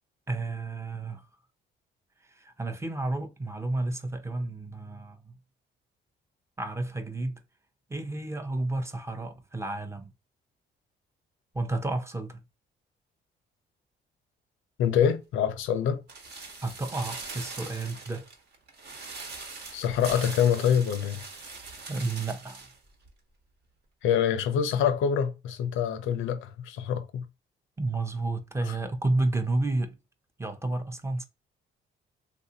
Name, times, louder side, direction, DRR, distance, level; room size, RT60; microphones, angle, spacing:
voice 1, 0.3-1.2 2.3-5.3 6.6-7.4 7.9-10.1 11.5-12.4 16.6-18.3 21.9-22.6 27.8-30.0 30.4-31.3, right 2 dB, 15° right, 0.6 m, -31 dB
voice 2, 14.8-16.0 19.7-21.2 24.0-27.2, left 8 dB, 85° left, 0.5 m, -25 dB
sound 1, 16.1-22.8 23.0-23.1, right 3 dB, 55° right, 1.1 m, -41 dB
3.4 x 2.5 x 2.7 m
cardioid pair, 90°, 20 cm